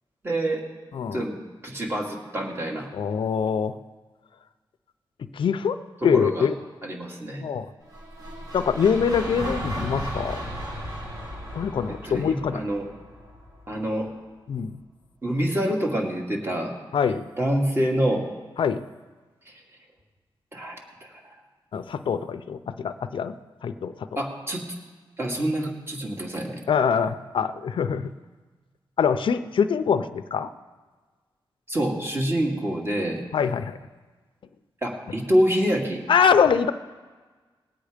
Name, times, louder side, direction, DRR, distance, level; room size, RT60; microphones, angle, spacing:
voice 1, 0.2-0.7 1.1-1.4 1.6-2.9 6.0-6.5 6.8-7.4 11.9-12.9 13.7-14.1 15.2-16.8 17.4-18.3 19.5-19.6 20.5-21.4 24.2-24.7 25.2-26.6 31.7-33.2 34.8-36.0, equal, 25° right, 0 dB, 2.3 m, -26 dB
voice 2, 2.9-3.8 5.3-5.8 6.0-6.5 7.4-7.7 8.5-10.4 11.5-12.6 14.5-14.7 16.9-17.3 18.6-18.8 21.7-23.3 23.6-23.9 26.7-28.1 29.0-30.5 33.3-33.8 36.1-36.7, left 6 dB, 65° left, 10 dB, 0.6 m, -23 dB
sound 1, 7.9-14.0, equal, 40° right, 2.7 m, -35 dB
20.0 x 8.3 x 5.1 m, 1.4 s
wide cardioid pair, 105°, 9 cm